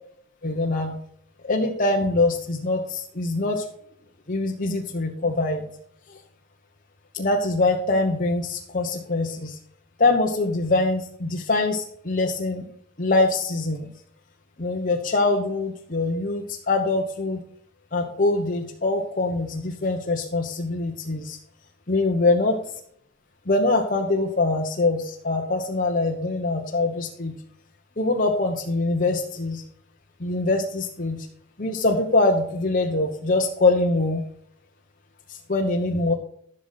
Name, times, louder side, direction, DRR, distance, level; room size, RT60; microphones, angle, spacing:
voice 1, 0.4-1.0 1.4-3.6 4.3-5.6 6.1-6.2 7.1-9.6 10.0-12.6 13.0-13.9 14.6-17.4 17.9-21.4 21.9-22.6 23.5-27.3 28.0-29.6 30.2-31.3 31.6-34.2 35.3-36.1, left 2 dB, 40° left, 1 dB, 1.0 m, -23 dB
12.0 x 6.6 x 4.0 m, 0.65 s
head